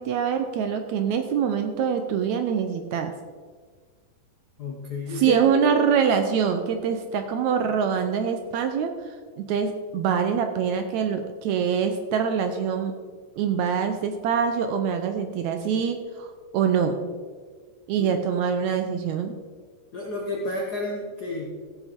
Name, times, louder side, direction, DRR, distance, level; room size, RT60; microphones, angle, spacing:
voice 1, 0.0-3.1 5.1-8.9 9.4-12.9 13.4-17.0 17.9-19.3, right 7 dB, 75° right, 7 dB, 1.8 m, -24 dB
voice 2, 4.6-5.7 18.0-18.1 19.9-21.5, left 2 dB, 70° left, 0 dB, 0.9 m, -31 dB
15.0 x 7.9 x 4.4 m, 1.5 s
omnidirectional pair, 3.8 m